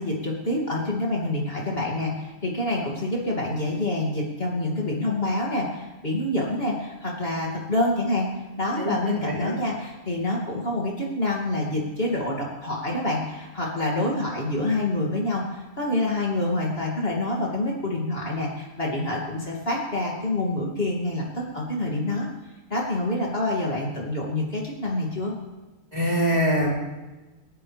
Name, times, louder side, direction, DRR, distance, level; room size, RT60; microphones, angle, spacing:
voice 1, 0.0-8.3 8.6-22.3 22.7-25.3, left 1 dB, 40° left, -3 dB, 2.9 m, -27 dB
voice 2, 8.8-9.6 25.9-26.7, equal, 25° right, -4 dB, 3.9 m, -24 dB
28.0 x 11.0 x 3.5 m, 1.2 s
omnidirectional pair, 1.5 m